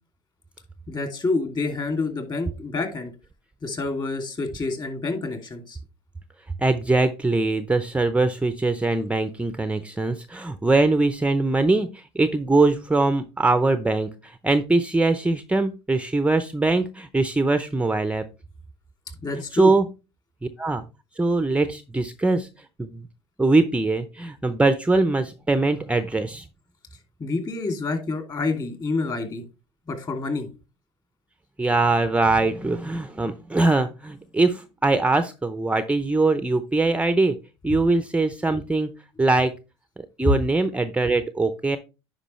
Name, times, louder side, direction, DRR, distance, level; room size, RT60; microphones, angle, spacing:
voice 1, 0.9-3.1 3.6-5.8 19.2-19.7 27.2-29.4 29.9-30.5 40.2-40.3, left 3 dB, 30° left, 5 dB, 2.6 m, -27 dB
voice 2, 6.6-18.3 19.5-19.9 20.6-20.8 21.2-22.5 22.8-23.1 23.4-26.5 31.6-37.4 37.6-38.9 39.2-39.5 40.2-41.8, right 2 dB, 10° right, 11 dB, 0.6 m, -22 dB
9.9 x 5.0 x 3.1 m, 0.29 s
hypercardioid pair, 90°, 14 cm